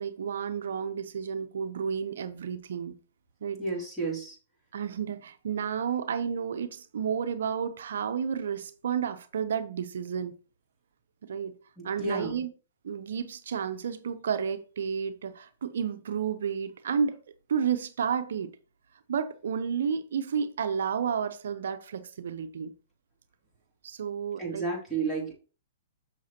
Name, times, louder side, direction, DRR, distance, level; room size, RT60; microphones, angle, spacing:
voice 1, 0.0-3.0 3.4-3.6 4.7-10.3 11.3-11.6 11.8-12.5 12.8-17.2 17.5-18.6 19.1-22.7 23.8-24.6, right 7 dB, 75° right, 0.6 m, -31 dB
voice 2, 3.6-4.4 11.8-12.3 24.4-25.3, right 3 dB, 5° left, 2.9 m, -32 dB
6.5 x 6.3 x 2.8 m
hypercardioid pair, 135°, 0 cm